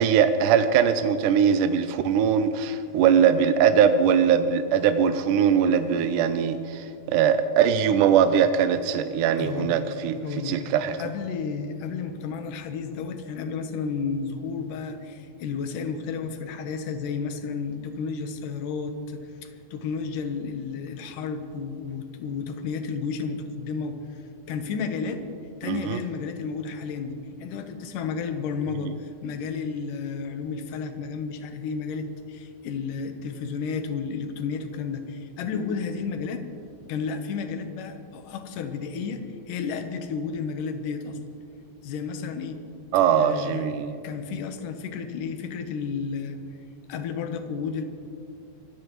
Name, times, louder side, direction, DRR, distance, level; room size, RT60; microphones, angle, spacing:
voice 1, 0.0-10.2 10.5-11.0 25.7-26.0 42.9-43.9, right 8 dB, 80° right, 9 dB, 2.0 m, -21 dB
voice 2, 9.4-9.8 10.2-10.7 11.0-24.2 24.5-25.2 25.6-36.4 36.9-41.2 41.8-42.6 43.2-43.7 44.0-46.4 46.9-47.8, left 5 dB, 70° left, 7 dB, 2.5 m, -32 dB
25.0 x 14.5 x 3.1 m, 2.4 s
omnidirectional pair, 4.0 m